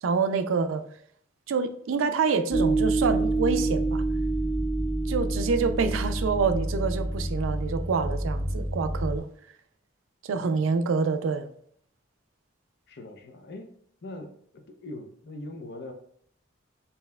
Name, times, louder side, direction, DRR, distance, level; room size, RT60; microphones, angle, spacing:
voice 1, 0.0-0.9 1.5-4.0 5.1-9.3 10.2-11.5, right 5 dB, 85° right, 0.4 m, -27 dB
sound 1, 2.5-9.2, right 2 dB, 10° left, 0.3 m, -27 dB
voice 2, 10.3-10.6 12.9-13.7 14.0-14.3 14.7-15.9, left 2 dB, 60° left, 0.6 m, -41 dB
5.3 x 2.8 x 2.2 m
head